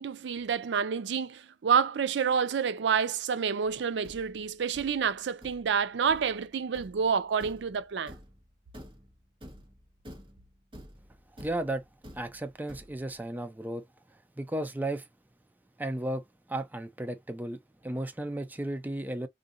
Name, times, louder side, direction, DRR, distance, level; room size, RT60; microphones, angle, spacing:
voice 1, 0.0-8.1, right 6 dB, 75° right, 0.4 m, -28 dB
Thump thud, 3.7-13.2, equal, 30° right, 1.1 m, -50 dB
voice 2, 11.4-11.8 12.1-13.8 14.4-15.1 15.8-16.2 16.5-19.3, right 1 dB, 10° right, 0.3 m, -34 dB
3.6 x 2.5 x 2.5 m
head